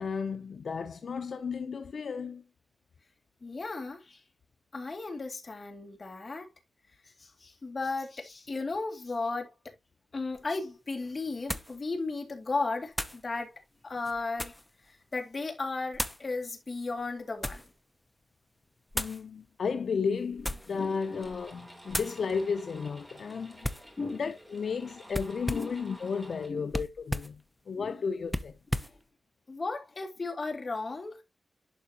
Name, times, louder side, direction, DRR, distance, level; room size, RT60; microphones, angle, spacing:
voice 1, 0.0-2.4 18.9-23.7 24.1-28.6, left 5 dB, 70° left, 0.6 m, -33 dB
voice 2, 3.4-4.2 4.7-6.5 7.2-9.5 10.1-13.5 13.8-14.5 15.1-17.6 20.7-21.2 24.0-24.3 25.5-25.7 26.5-26.8 27.8-28.0 29.5-31.2, left 3 dB, 40° left, 2.4 m, -35 dB
sound 1, 10.3-10.4 11.5-11.8 12.9-13.2 14.0-14.7 15.9-16.3 17.0-17.7 18.9-19.2 20.3-20.8 21.2-21.5 21.9-22.2 23.6-23.9 25.1-25.8 26.7-27.4 28.3-29.0, left 1 dB, 5° left, 0.7 m, -35 dB
sound 2, 20.3-26.5, equal, 10° right, 3.1 m, -52 dB
11.5 x 4.7 x 2.8 m
wide cardioid pair, 125°, 0 cm